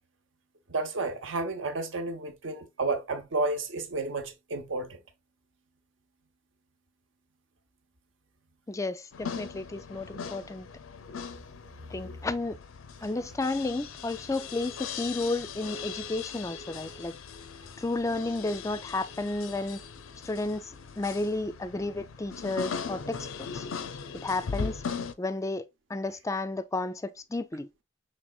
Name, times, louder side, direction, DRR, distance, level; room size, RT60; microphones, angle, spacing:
voice 1, 0.7-5.0, right 3 dB, 70° right, 0.8 m, -31 dB
voice 2, 8.7-10.7 11.9-12.6 13.0-17.1 17.8-19.8 20.2-23.6 24.2-24.8 25.2-25.6 25.9-27.7, left 2 dB, 15° left, 0.3 m, -32 dB
sound 1, 9.1-25.1, left 6 dB, 90° left, 0.5 m, -39 dB
6.1 x 3.3 x 2.3 m
head